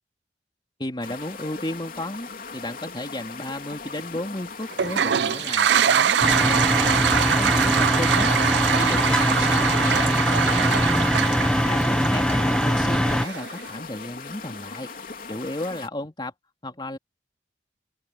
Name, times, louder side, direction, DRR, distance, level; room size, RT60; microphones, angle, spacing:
voice 1, 0.8-8.3 8.7-10.9 11.7-14.9 15.3-16.3 16.6-17.0, left 1 dB, 25° left, 3.0 m, -34 dB
sound 1, 1.0-15.9, left 4 dB, 55° left, 3.4 m, -39 dB
Toilet flush, 4.7-13.6, right 8 dB, 80° right, 0.4 m, -23 dB
sound 2, 6.2-13.3, equal, 5° left, 0.6 m, -22 dB
open air
head